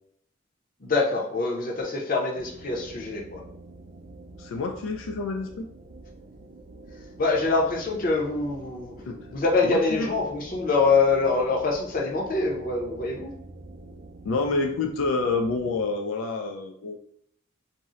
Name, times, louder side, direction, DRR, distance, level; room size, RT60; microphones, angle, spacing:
voice 1, 0.8-3.4 7.2-9.0 9.3-13.3, left 3 dB, 45° left, -1 dB, 0.6 m, -24 dB
sound 1, 2.4-15.8, right 2 dB, 50° right, 0.4 m, -46 dB
voice 2, 4.4-5.7 9.1-9.2 9.6-10.1 14.2-17.0, left 3 dB, 85° left, 3 dB, 0.3 m, -28 dB
2.6 x 2.0 x 3.6 m, 0.70 s
head